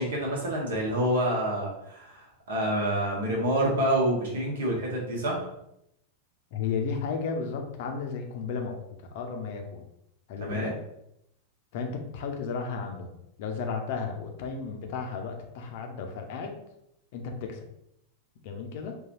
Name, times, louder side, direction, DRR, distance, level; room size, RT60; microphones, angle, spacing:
voice 1, 0.0-5.5 10.4-10.7, right 1 dB, 60° right, -2 dB, 1.1 m, -27 dB
voice 2, 6.5-8.8 9.1-9.8 10.3-10.8 11.7-13.1 13.4-16.5 17.1-17.6 18.4-18.9, left 5 dB, 50° left, 3 dB, 0.6 m, -33 dB
3.9 x 2.4 x 2.9 m, 0.80 s
figure-of-eight pair, 90°, 0 cm